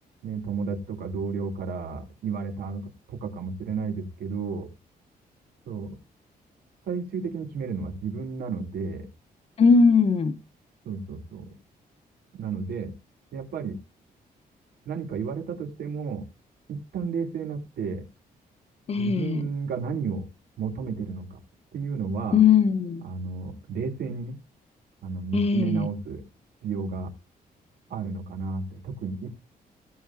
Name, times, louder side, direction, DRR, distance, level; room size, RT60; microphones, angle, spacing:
voice 1, 0.2-4.7 5.7-6.0 6.9-9.1 10.9-11.5 12.3-12.9 13.3-13.8 14.9-16.2 16.7-18.0 19.0-20.3 20.6-21.4 21.7-22.4 23.0-24.4 25.0-26.2 26.6-27.1 27.9-29.3, right 5 dB, 85° right, 1.9 m, -32 dB
voice 2, 9.6-10.4 18.9-19.5 22.3-23.0 25.3-25.9, left 5 dB, 40° left, 1.1 m, -20 dB
16.0 x 7.3 x 2.8 m
wide cardioid pair, 160°, 16 cm